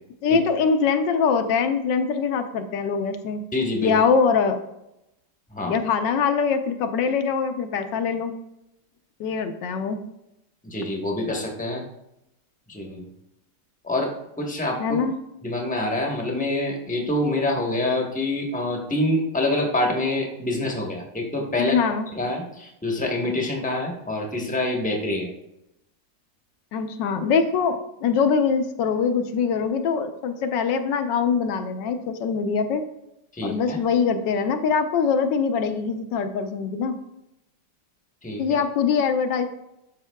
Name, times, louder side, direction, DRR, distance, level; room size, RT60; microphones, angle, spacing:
voice 1, 0.2-3.4 3.8-4.6 5.6-8.3 9.2-10.0 14.8-15.2 21.6-22.1 26.7-32.8 33.4-37.0 38.4-39.5, left 6 dB, 75° left, 7 dB, 1.3 m, -23 dB
voice 2, 3.5-3.9 5.5-5.8 10.6-11.8 12.7-13.1 13.8-15.0 15.4-25.3 33.3-33.8 38.2-38.4, left 1 dB, 5° left, 0 dB, 0.6 m, -26 dB
12.0 x 5.5 x 2.2 m, 0.86 s
omnidirectional pair, 2.0 m